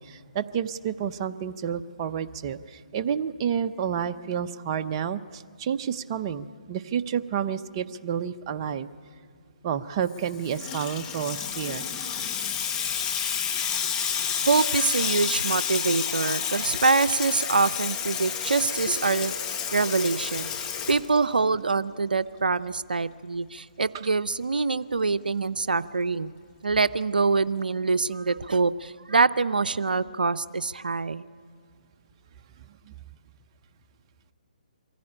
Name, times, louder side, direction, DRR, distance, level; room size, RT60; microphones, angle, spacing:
voice 1, 0.0-8.9 9.6-11.8 32.9-33.0, right 8 dB, 30° right, 10 dB, 0.7 m, -30 dB
Water tap faucet / Sink (filling or washing), 10.1-21.6, left 8 dB, 20° left, 1.1 m, -30 dB
voice 2, 14.4-19.3 19.7-26.3 26.6-31.2, right 4 dB, 80° right, 13 dB, 0.5 m, -25 dB
23.5 x 15.5 x 8.7 m, 2.3 s
figure-of-eight pair, 145°, 5 cm